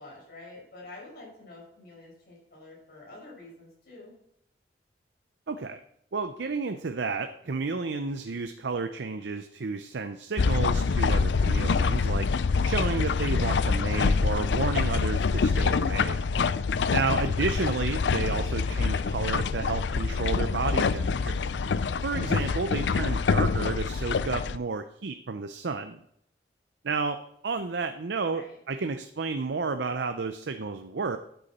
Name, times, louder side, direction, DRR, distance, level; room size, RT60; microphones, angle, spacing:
voice 1, 0.0-4.1 28.3-28.6, left 2 dB, 60° left, -3 dB, 4.9 m, -48 dB
voice 2, 5.5-5.8 6.1-12.3 12.6-16.2 16.9-21.4 22.0-26.0 26.8-31.2, right 4 dB, 80° right, 8 dB, 0.6 m, -31 dB
sound 1, 10.4-24.6, left 5 dB, 85° left, 0.4 m, -26 dB
12.5 x 8.2 x 4.3 m, 0.73 s
head